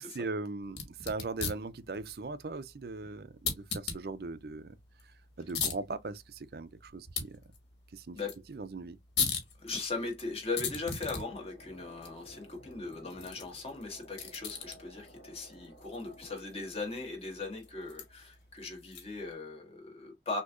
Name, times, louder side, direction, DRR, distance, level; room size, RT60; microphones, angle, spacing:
voice 1, 0.0-4.8 5.0-7.4 7.9-8.2 8.5-9.0, right 3 dB, 60° right, 0.5 m, -39 dB
sound 1, 0.6-19.3, left 6 dB, 80° left, 1.9 m, -41 dB
voice 2, 9.6-20.4, left 3 dB, 35° left, 1.7 m, -39 dB
sound 2, 10.1-18.4, equal, 55° left, 2.9 m, -57 dB
6.3 x 2.8 x 2.5 m
head